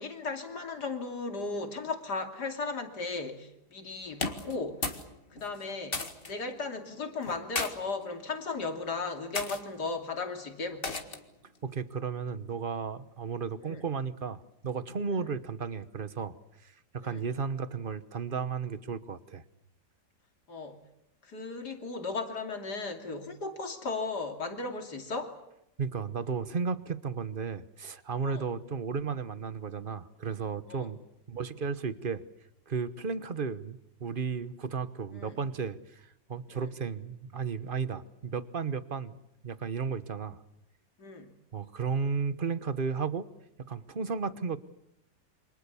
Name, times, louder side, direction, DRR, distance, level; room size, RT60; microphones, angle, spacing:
voice 1, 0.0-4.9 5.3-11.0 13.6-13.8 15.2-15.3 17.0-17.2 20.5-20.8 21.2-25.3 28.2-28.4 30.7-30.9 35.1-35.4 36.5-36.7 41.0-41.3, left 3 dB, 60° left, 5 dB, 3.4 m, -36 dB
sound 1, 4.1-5.1 5.4-6.3 7.2-7.7 8.5-8.8 9.3-9.6 10.8-11.3, left 3 dB, 30° left, 2.0 m, -34 dB
voice 2, 11.6-16.3 16.6-19.4 25.8-31.0 31.3-32.2 32.7-39.2 39.4-40.4 41.5-43.3 43.7-44.6, right 5 dB, 35° right, 14 dB, 1.0 m, -34 dB
28.5 x 25.5 x 7.0 m, 0.81 s
omnidirectional pair, 2.0 m